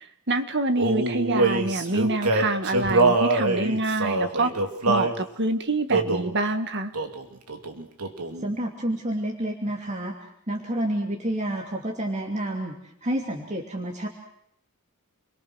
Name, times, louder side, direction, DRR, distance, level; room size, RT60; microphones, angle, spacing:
voice 1, 0.3-6.9, right 2 dB, 50° right, 8 dB, 1.9 m, -26 dB
Male singing, 0.8-5.2 5.9-6.3 6.9-7.2 7.5-8.4, right 2 dB, 85° right, 2.8 m, -24 dB
voice 2, 8.4-10.1 10.5-14.1, right 1 dB, 30° right, 1 dB, 2.9 m, -29 dB
29.5 x 23.0 x 6.3 m, 0.71 s
head